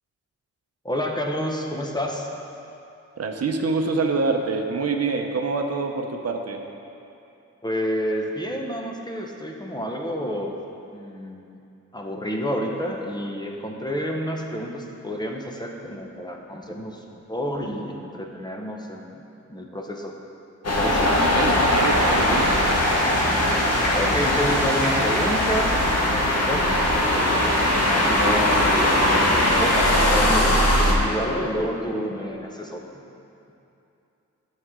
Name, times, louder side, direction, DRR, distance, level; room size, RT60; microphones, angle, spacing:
voice 1, 0.8-2.3 7.6-10.5 10.9-11.5 11.9-17.0 17.3-19.2 19.5-20.1 20.7-21.2 23.9-27.5 27.8-29.1 29.4-32.8, equal, 15° left, 1 dB, 0.8 m, -29 dB
voice 2, 3.2-6.6 21.2-22.5, right 4 dB, 55° right, 3 dB, 0.7 m, -26 dB
sound 1, 20.6-30.9, left 1 dB, 55° left, 1.5 m, -20 dB
Applause, 21.6-27.3, left 1 dB, 80° left, 1.7 m, -29 dB
10.0 x 6.5 x 3.7 m, 2.8 s
cardioid pair, 75°, 30 cm